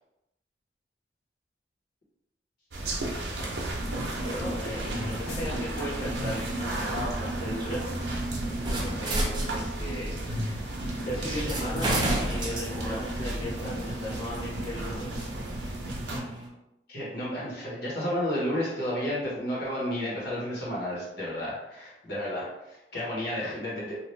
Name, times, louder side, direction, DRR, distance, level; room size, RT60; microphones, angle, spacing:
sound 1, 2.7-16.2, right 1 dB, 75° right, 0.7 m, -33 dB
voice 1, 4.2-7.8 8.5-10.7 11.1-15.3, equal, 20° left, -9 dB, 0.6 m, -37 dB
sound 2, 4.8-10.0 10.9-11.0 11.5-16.5, right 1 dB, 25° right, 0.6 m, -34 dB
sound 3, 5.3-6.2 8.6-9.4 11.8-12.1, left 2 dB, 85° left, 0.7 m, -44 dB
voice 2, 16.9-24.0, left 1 dB, 65° left, -6 dB, 1.4 m, -32 dB
2.7 x 2.5 x 3.2 m, 0.93 s
head